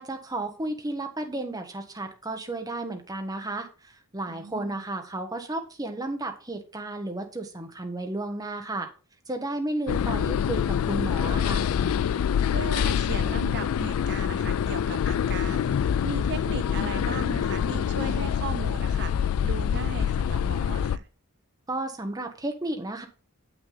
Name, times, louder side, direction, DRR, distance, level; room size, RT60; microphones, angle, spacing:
voice 1, 0.0-8.9 9.3-11.6 21.7-23.1, right 2 dB, 15° right, 5 dB, 1.0 m, -33 dB
voice 2, 4.3-4.8 12.5-21.1, right 6 dB, 50° right, 11 dB, 0.4 m, -37 dB
sound 1, 9.9-21.0, left 8 dB, 70° left, 0.3 m, -26 dB
7.3 x 6.0 x 3.9 m, 0.38 s
head